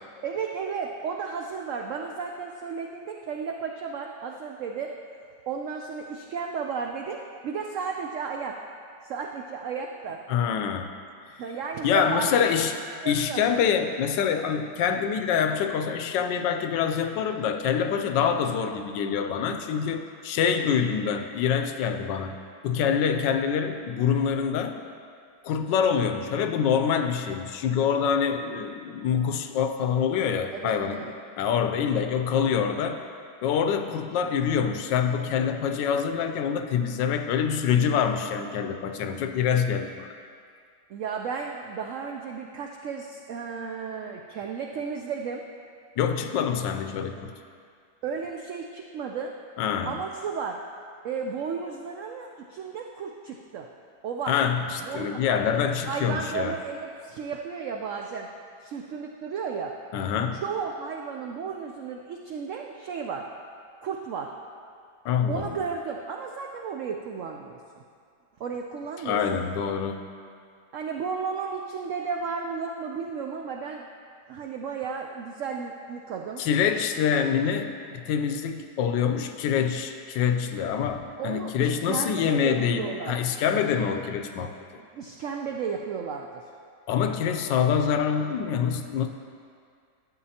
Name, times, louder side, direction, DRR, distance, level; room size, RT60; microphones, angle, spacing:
voice 1, 0.2-4.9 5.5-8.6 9.0-10.2 11.4-12.7 13.0-13.4 30.5-31.1 32.0-32.1 40.9-45.4 48.0-49.3 49.8-50.6 51.0-53.7 54.0-54.4 54.8-55.5 55.9-58.3 58.6-59.7 60.4-63.3 63.8-64.3 65.3-67.6 68.4-69.4 70.7-73.8 74.3-76.4 81.2-83.2 84.8-86.4, right 6 dB, 80° right, 2 dB, 0.7 m, -33 dB
voice 2, 10.3-10.9 11.8-12.8 13.0-22.4 22.6-24.8 25.4-33.0 33.4-40.1 46.0-47.3 49.6-50.0 54.3-56.6 59.9-60.4 65.0-65.6 69.0-70.0 76.4-84.5 86.9-89.1, left 7 dB, 90° left, 7 dB, 1.3 m, -25 dB
12.0 x 8.0 x 2.8 m, 2.3 s
omnidirectional pair, 1.9 m